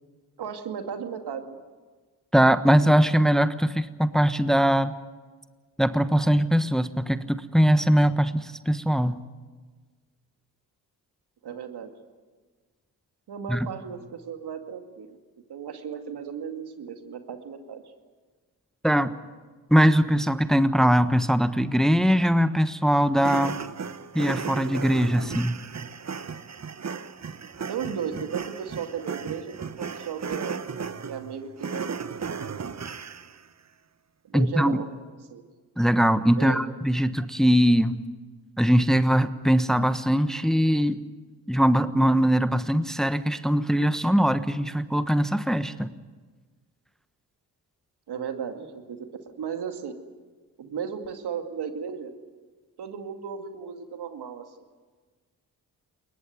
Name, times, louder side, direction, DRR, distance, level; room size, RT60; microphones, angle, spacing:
voice 1, 0.4-1.6 11.4-11.9 13.3-15.2 15.5-17.8 27.7-30.6 31.1-32.1 32.5-32.7 34.2-34.8 35.3-35.4 36.4-36.6 48.1-49.9 50.6-52.1 52.8-54.4, right 7 dB, 70° right, 6 dB, 2.3 m, -35 dB
voice 2, 2.3-4.9 5.8-9.2 13.5-13.7 18.8-19.1 19.7-23.6 24.1-25.6 34.3-34.8 35.8-38.0 38.6-41.0 41.5-45.9, equal, ahead, 11 dB, 1.2 m, -21 dB
sound 1, 23.2-33.4, right 6 dB, 40° right, 1.2 m, -35 dB
21.5 x 19.0 x 9.4 m, 1.4 s
supercardioid pair, 45°, 40 cm